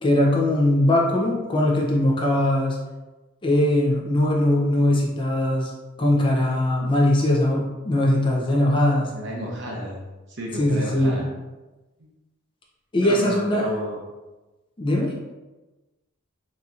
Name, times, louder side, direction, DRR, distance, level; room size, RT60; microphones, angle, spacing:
voice 1, 0.0-2.8 3.4-5.7 6.0-9.1 10.6-11.2 12.9-13.7 14.8-15.1, left 1 dB, 25° left, -2 dB, 0.5 m, -20 dB
voice 2, 9.0-10.0 10.3-11.3 12.0-12.1 13.0-14.0, equal, 55° right, -2 dB, 0.8 m, -32 dB
4.1 x 2.7 x 2.4 m, 1.1 s
head